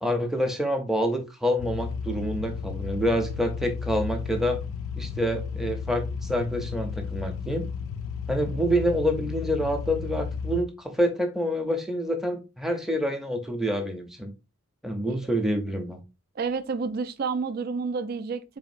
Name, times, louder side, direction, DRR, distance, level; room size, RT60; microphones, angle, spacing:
voice 1, 0.0-4.6 5.0-7.7 8.3-14.3 14.8-16.0, equal, ahead, 0.6 m, -27 dB
sound 1, 1.6-10.6, left 6 dB, 85° left, 0.4 m, -33 dB
voice 2, 16.4-18.6, right 5 dB, 45° right, 0.3 m, -30 dB
4.0 x 3.5 x 2.5 m
head